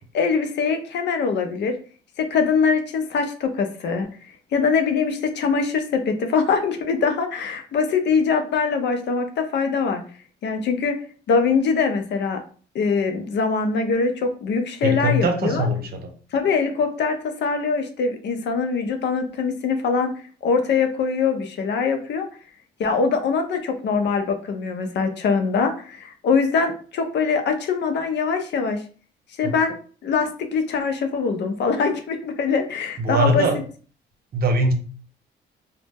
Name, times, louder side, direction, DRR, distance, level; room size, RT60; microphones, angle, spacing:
voice 1, 0.1-1.8 2.2-4.1 4.5-10.0 10.4-11.0 11.3-12.4 12.7-15.7 16.3-20.1 20.4-22.3 22.8-28.8 29.4-29.7 30.0-33.5, left 5 dB, 60° left, 6 dB, 0.5 m, -23 dB
voice 2, 14.8-16.1 29.4-29.6 33.0-33.6 34.3-34.7, right 1 dB, 50° right, 5 dB, 0.6 m, -21 dB
2.0 x 2.0 x 3.3 m, 0.41 s
cardioid pair, 90°, 20 cm